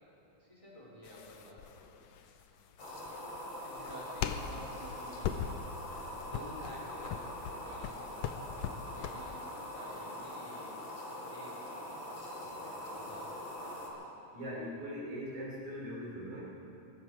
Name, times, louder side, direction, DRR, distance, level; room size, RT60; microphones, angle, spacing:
voice 1, 0.4-3.3 3.6-5.5 6.2-9.4 9.7-10.7 11.1-11.6 12.5-13.4, left 1 dB, 10° right, -5 dB, 3.3 m, -52 dB
sound 1, 1.0-9.4, left 9 dB, 75° left, 1.8 m, -40 dB
sound 2, 2.8-13.9, left 1 dB, 55° left, 3.7 m, -43 dB
voice 2, 14.3-16.4, equal, 90° right, -6 dB, 4.9 m, -40 dB
23.5 x 13.5 x 4.6 m, 3.0 s
omnidirectional pair, 3.4 m